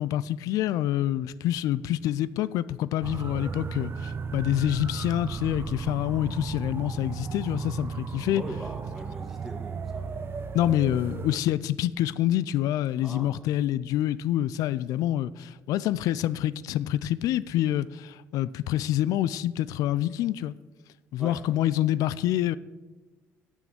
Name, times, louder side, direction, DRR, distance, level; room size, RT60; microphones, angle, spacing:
voice 1, 0.0-8.4 10.5-20.6 21.1-22.6, left 13 dB, 70° left, 0.3 m, -27 dB
sound 1, 3.0-11.4, right 5 dB, 40° right, 0.6 m, -35 dB
voice 2, 8.3-10.5 13.0-13.4 21.2-21.4, right 1 dB, ahead, 2.3 m, -41 dB
8.8 x 6.3 x 7.6 m
supercardioid pair, 65°, 6 cm